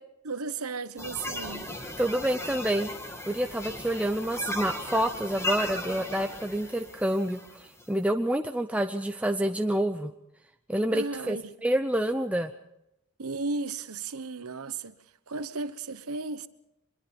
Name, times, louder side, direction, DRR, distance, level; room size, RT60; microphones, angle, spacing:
voice 1, 0.2-1.7 10.9-11.5 13.2-15.0 15.3-16.5, right 3 dB, 80° right, 1.1 m, -35 dB
sound 1, 1.0-7.9, left 1 dB, 15° left, 2.6 m, -37 dB
voice 2, 2.0-2.9 3.3-10.1 10.7-12.5, right 1 dB, 5° right, 0.7 m, -28 dB
24.0 x 22.0 x 5.3 m
head